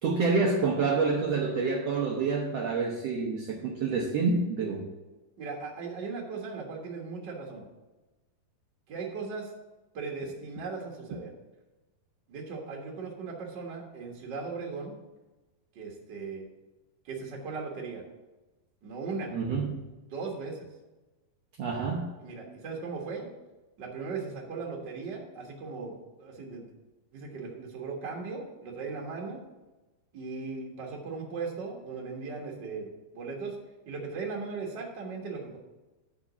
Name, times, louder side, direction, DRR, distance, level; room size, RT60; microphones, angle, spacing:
voice 1, 0.0-4.8 19.3-19.9 21.6-22.1, right 4 dB, 85° right, -1 dB, 1.4 m, -28 dB
voice 2, 5.4-7.6 8.9-9.5 9.9-11.3 12.3-14.9 15.7-16.5 17.0-18.0 18.8-19.3 20.1-20.6 22.2-23.3 23.8-26.7 27.1-29.4 30.1-33.6 33.8-35.6, right 4 dB, 55° right, -1 dB, 1.2 m, -38 dB
11.5 x 4.1 x 6.5 m, 1.1 s
omnidirectional pair, 4.2 m